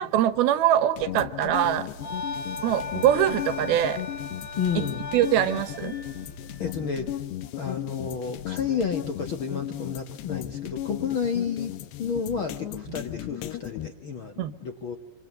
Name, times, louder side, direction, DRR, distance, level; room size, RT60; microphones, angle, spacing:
voice 1, 0.0-1.9 2.6-4.0 4.8-4.9 5.1-5.9 14.4-14.5, right 11 dB, 75° right, 13 dB, 2.8 m, -23 dB
sound 1, 1.0-13.9, left 13 dB, 80° left, 3.2 m, -36 dB
sound 2, 1.9-7.1, left 3 dB, 35° left, 4.9 m, -37 dB
voice 2, 4.6-5.0 6.6-7.1 7.6-11.7 12.0-15.0, left 6 dB, 65° left, 6 dB, 1.3 m, -31 dB
26.5 x 26.0 x 8.0 m, 0.96 s
omnidirectional pair, 4.8 m